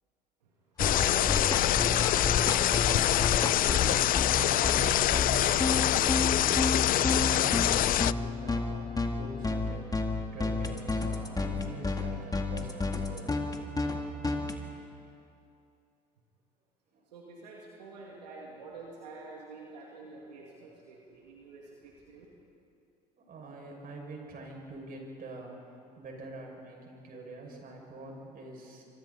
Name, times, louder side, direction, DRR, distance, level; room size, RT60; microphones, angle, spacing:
sound 1, 0.8-8.1, left 14 dB, 45° left, 0.4 m, -25 dB
sound 2, 0.8-14.6, left 3 dB, 20° left, 2.1 m, -31 dB
voice 1, 0.9-5.8 17.1-22.3, right 3 dB, 85° right, -2 dB, 2.4 m, -46 dB
voice 2, 6.5-13.4 16.9-17.0 23.2-25.6 26.0-28.8, right 2 dB, 45° right, 0 dB, 6.6 m, -45 dB
28.5 x 25.0 x 4.3 m, 2.7 s
hypercardioid pair, 65°, 21 cm